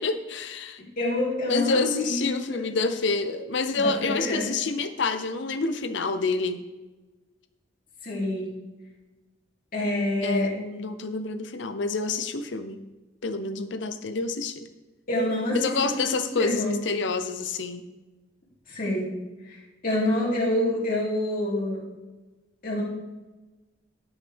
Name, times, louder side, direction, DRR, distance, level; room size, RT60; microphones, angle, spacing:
voice 1, 0.0-0.8 1.5-6.6 10.2-12.8 13.2-14.7 15.5-17.8, left 3 dB, 65° left, 10 dB, 0.7 m, -28 dB
voice 2, 1.0-2.6 3.8-4.5 8.0-8.5 9.7-10.5 15.1-16.1 16.4-16.7 18.7-19.1 19.5-19.6 19.8-21.8 22.6-22.8, left 1 dB, 45° left, -5 dB, 2.9 m, -27 dB
11.5 x 6.5 x 3.5 m, 1.1 s
head